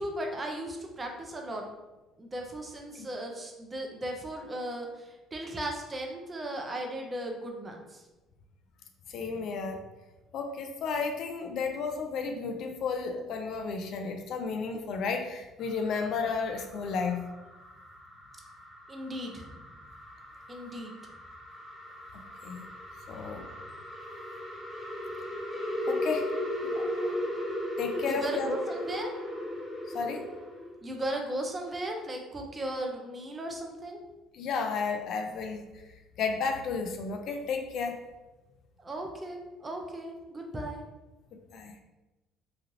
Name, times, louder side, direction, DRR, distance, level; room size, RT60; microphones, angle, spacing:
voice 1, 0.0-1.6 2.2-8.1 18.9-19.6 20.5-20.9 28.0-29.1 30.8-34.0 38.8-40.9, right 1 dB, 30° right, 2 dB, 0.6 m, -36 dB
voice 2, 9.1-9.9 10.3-17.2 22.4-22.6 23.1-23.5 25.9-26.3 26.7-26.9 27.8-28.5 29.9-30.3 34.3-35.6 36.2-38.0 41.3-41.7, left 5 dB, 65° left, 5 dB, 0.4 m, -32 dB
sound 1, 15.6-30.7, equal, ahead, 1.2 m, -37 dB
3.1 x 2.4 x 2.7 m, 1.1 s
supercardioid pair, 85°, 0 cm